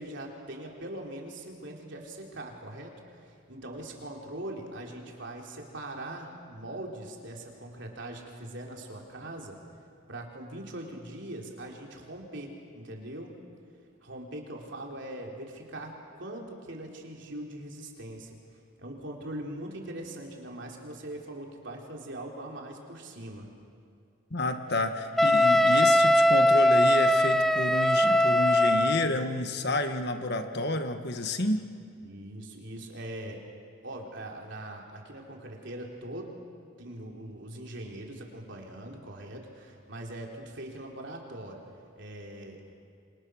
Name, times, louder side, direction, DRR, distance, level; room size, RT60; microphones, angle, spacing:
voice 1, 0.0-9.6 10.1-13.4 14.0-18.4 18.8-23.5 32.0-33.4 33.8-36.4 36.8-41.7 42.0-42.6, right 1 dB, 55° right, 0 dB, 3.7 m, -41 dB
voice 2, 24.3-31.7, left 2 dB, 50° left, 7 dB, 1.5 m, -30 dB
Wind instrument woodwind instrument, 25.2-29.1, left 1 dB, ahead, 0.5 m, -21 dB
28.0 x 26.0 x 6.4 m, 2.3 s
head